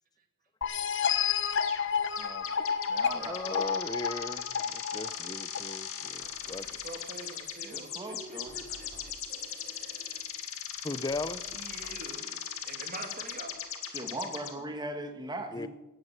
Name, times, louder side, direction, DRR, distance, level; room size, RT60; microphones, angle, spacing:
sound 1, 0.6-6.1, left 7 dB, 60° left, 0.8 m, -31 dB
sound 2, 1.6-1.9 2.2-14.5, left 9 dB, 80° left, 2.0 m, -39 dB
voice 1, 2.2-2.5 2.9-3.6 7.6-8.5 13.9-15.7, right 1 dB, 20° right, 1.6 m, -39 dB
voice 2, 3.1-6.8 10.8-11.6 11.8-11.9 15.5-15.7, left 2 dB, 20° left, 0.6 m, -38 dB
sound 3, 6.1-13.6, equal, 85° right, 7.1 m, -58 dB
voice 3, 6.8-10.2 11.5-13.6, right 2 dB, 40° right, 2.4 m, -46 dB
16.5 x 9.5 x 7.4 m
head